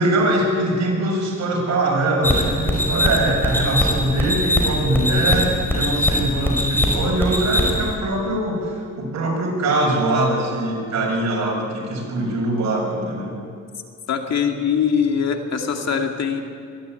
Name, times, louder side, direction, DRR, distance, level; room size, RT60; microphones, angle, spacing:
voice 1, 0.0-13.4, right 1 dB, 65° right, -1 dB, 7.1 m, -22 dB
sound 1, 2.2-7.9, left 1 dB, 5° left, 5.3 m, -21 dB
voice 2, 14.1-16.4, left 7 dB, 60° left, 3 dB, 2.4 m, -22 dB
23.0 x 13.5 x 9.2 m, 2.2 s
cardioid pair, 90°, 30 cm